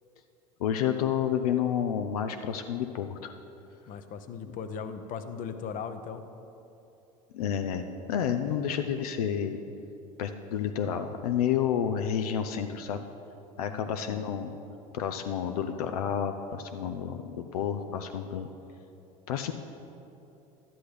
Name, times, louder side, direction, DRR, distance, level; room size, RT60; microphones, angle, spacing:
voice 1, 0.6-3.3 7.3-7.8 8.1-9.6 10.2-13.0 13.6-14.5 14.9-18.5 19.3-19.5, left 8 dB, 80° left, 7 dB, 0.5 m, -30 dB
voice 2, 3.9-6.2 13.7-14.2, left 6 dB, 45° left, 9 dB, 0.7 m, -38 dB
11.5 x 10.0 x 3.3 m, 2.9 s
hypercardioid pair, 85°, 19 cm